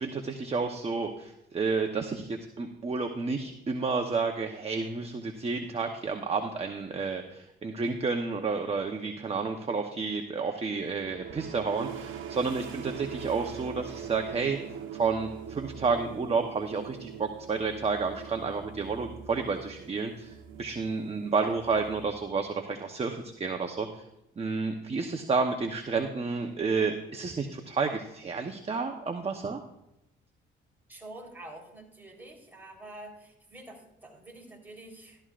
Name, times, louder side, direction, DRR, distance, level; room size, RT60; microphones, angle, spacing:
voice 1, 0.0-14.6 14.9-23.9 24.4-29.6, right 4 dB, 30° right, 4 dB, 1.0 m, -30 dB
sound 1, 11.0-22.6, right 8 dB, 85° right, 1.0 m, -42 dB
voice 2, 30.9-35.2, right 1 dB, 10° right, -1 dB, 3.9 m, -47 dB
14.0 x 12.5 x 2.5 m, 0.85 s
cardioid pair, 90°, 20 cm